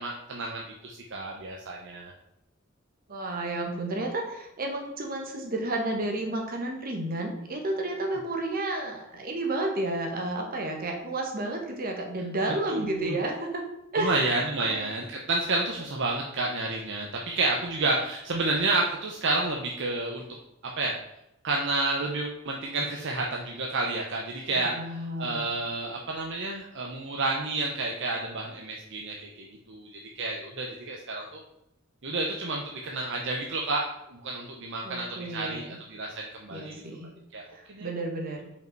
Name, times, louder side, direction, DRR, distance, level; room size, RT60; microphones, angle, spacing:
voice 1, 0.0-2.1 12.7-13.2 14.0-20.2 20.8-20.9 21.4-24.7 25.2-31.4 32.0-33.8 34.1-36.8 37.3-37.4 37.7-37.9, right 2 dB, 60° right, 0 dB, 0.8 m, -30 dB
voice 2, 3.1-13.6 13.9-14.9 24.5-25.5 34.8-35.8 36.5-37.1 37.5-38.5, right 2 dB, 45° right, 1 dB, 1.4 m, -32 dB
5.3 x 5.2 x 4.5 m, 0.86 s
head